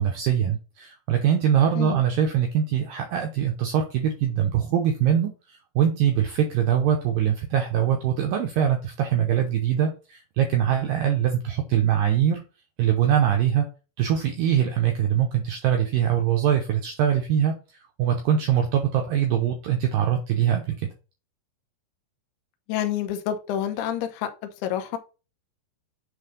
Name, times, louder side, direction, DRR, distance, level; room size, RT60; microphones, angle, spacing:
voice 1, 0.0-12.4 12.8-13.7 14.0-17.5 18.0-20.9, right 9 dB, 90° right, 2.0 m, -23 dB
voice 2, 22.7-24.3 24.6-25.0, left 10 dB, 75° left, 2.7 m, -28 dB
7.8 x 3.3 x 5.1 m
omnidirectional pair, 5.1 m